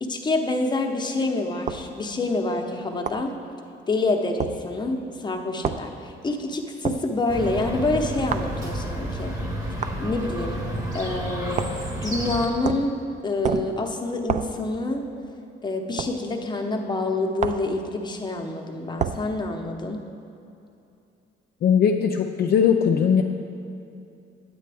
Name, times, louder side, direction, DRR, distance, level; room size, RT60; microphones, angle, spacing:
voice 1, 0.0-3.3 3.9-9.4 10.0-10.7 10.9-11.7 12.0-13.0 13.2-15.0 15.6-20.0, left 2 dB, 20° left, 3 dB, 0.8 m, -27 dB
sound 1, 1.7-1.9 3.1-3.3 4.4-4.6 5.6-5.9 6.8-7.1 8.3-8.5 9.8-10.0 11.6-11.9 12.6-12.9 13.4-13.8 14.3-14.6 16.0-16.2 17.4-17.7 19.0-19.3, right 7 dB, 40° right, 0.4 m, -28 dB
Chirp tweet, 7.3-12.5, equal, 15° right, 1.0 m, -31 dB
voice 2, 21.6-23.2, left 7 dB, 55° left, 3 dB, 0.4 m, -19 dB
9.1 x 8.4 x 3.4 m, 2.7 s
cardioid pair, 90°, 20 cm